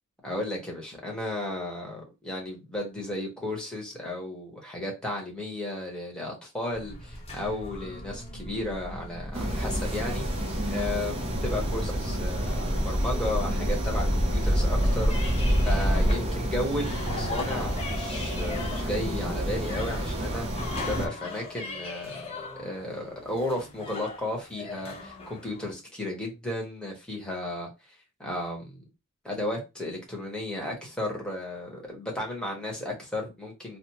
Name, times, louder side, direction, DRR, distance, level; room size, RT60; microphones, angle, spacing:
voice 1, 0.2-22.2 22.6-27.7 28.2-28.8 29.2-33.8, left 1 dB, 5° left, 1.1 m, -34 dB
sound 1, 6.7-25.7, equal, 25° left, 0.8 m, -32 dB
sound 2, 9.3-21.1, equal, 25° right, 0.7 m, -31 dB
3.3 x 2.1 x 2.9 m
head